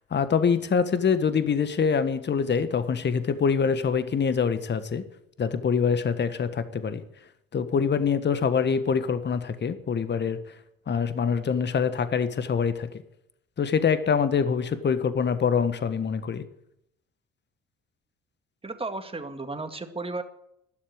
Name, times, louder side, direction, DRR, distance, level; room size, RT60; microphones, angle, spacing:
voice 1, 0.1-5.0 5.4-7.0 7.5-10.4 10.9-12.9 13.6-16.4, left 6 dB, 35° left, 12 dB, 1.5 m, -25 dB
voice 2, 18.6-20.2, right 3 dB, 20° right, 7 dB, 2.1 m, -34 dB
12.5 x 11.0 x 9.4 m, 0.77 s
hypercardioid pair, 55°, 30 cm